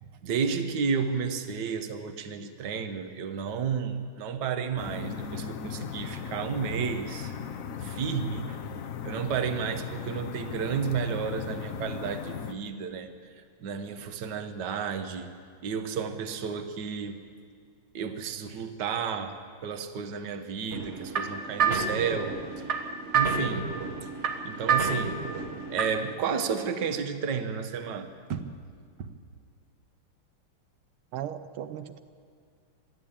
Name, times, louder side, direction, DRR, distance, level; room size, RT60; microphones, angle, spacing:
voice 1, 0.0-7.3 7.8-8.6 9.0-13.1 13.6-15.3 15.6-17.2 17.9-22.7 23.1-23.7 24.4-25.2 25.7-28.4 29.0-29.1, right 6 dB, 60° right, 8 dB, 1.7 m, -32 dB
sound 1, 4.8-12.5, left 7 dB, 60° left, 0.9 m, -37 dB
sound 2, 20.7-26.1, right 5 dB, 40° right, 1.4 m, -29 dB
voice 2, 31.1-32.0, right 10 dB, 85° right, 10 dB, 1.6 m, -36 dB
22.0 x 13.5 x 8.8 m, 2.1 s
omnidirectional pair, 2.3 m